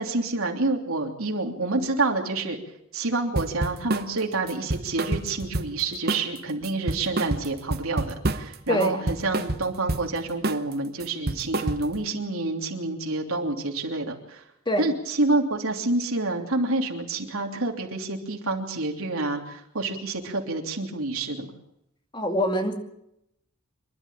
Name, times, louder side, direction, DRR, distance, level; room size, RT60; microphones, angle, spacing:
voice 1, 0.0-2.6 2.9-14.4 14.8-21.5, right 2 dB, 75° right, 2 dB, 3.1 m, -28 dB
sound 1, 3.3-4.1 4.5-5.8 6.1-6.4 6.6-8.6 8.8-10.1 10.4-10.7 11.0-12.0, right 2 dB, 45° right, 1.0 m, -28 dB
voice 2, 8.7-9.0 14.7-14.9 22.1-22.7, equal, 20° left, 4 dB, 2.4 m, -24 dB
26.5 x 11.5 x 8.9 m, 0.80 s
head